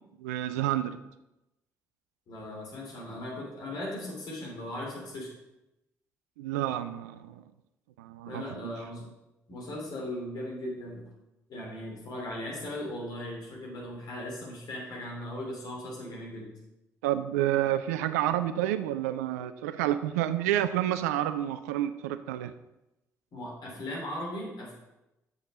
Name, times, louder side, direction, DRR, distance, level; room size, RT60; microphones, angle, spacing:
voice 1, 0.2-1.0 6.4-7.3 8.0-8.7 17.0-22.5, right 12 dB, 70° right, 12 dB, 0.4 m, -29 dB
voice 2, 2.3-5.3 8.3-9.0 9.5-11.0 11.5-16.5 23.3-24.7, left 1 dB, 50° left, -2 dB, 2.9 m, -38 dB
7.1 x 6.9 x 4.0 m, 0.93 s
figure-of-eight pair, 45°, 9 cm